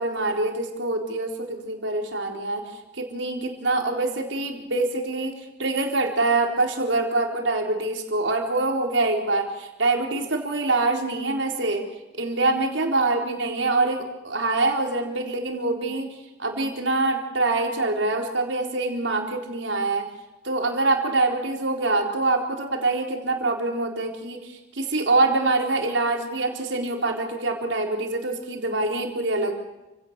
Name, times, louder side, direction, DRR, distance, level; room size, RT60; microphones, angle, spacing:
voice 1, 0.0-2.6 2.9-5.3 5.6-11.8 12.1-16.1 16.4-20.1 20.4-29.5, right 2 dB, 90° right, 2 dB, 4.0 m, -25 dB
29.0 x 17.5 x 6.8 m, 1.0 s
head